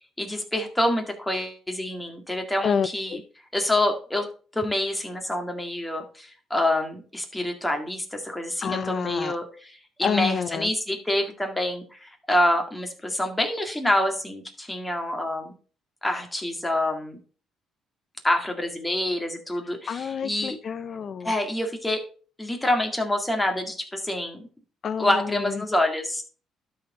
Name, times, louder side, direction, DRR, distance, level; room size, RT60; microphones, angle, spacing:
voice 1, 0.2-3.2 3.5-4.3 4.5-15.5 16.0-17.2 18.2-20.6 21.2-22.0 22.4-24.5 25.0-26.2, left 1 dB, 10° left, 3 dB, 1.9 m, -27 dB
voice 2, 2.6-3.2 8.6-9.4 10.0-10.7 19.9-21.3 24.8-25.6, left 6 dB, 50° left, 13 dB, 0.5 m, -28 dB
12.5 x 4.3 x 3.8 m, 0.40 s
cardioid pair, 100°, 0 cm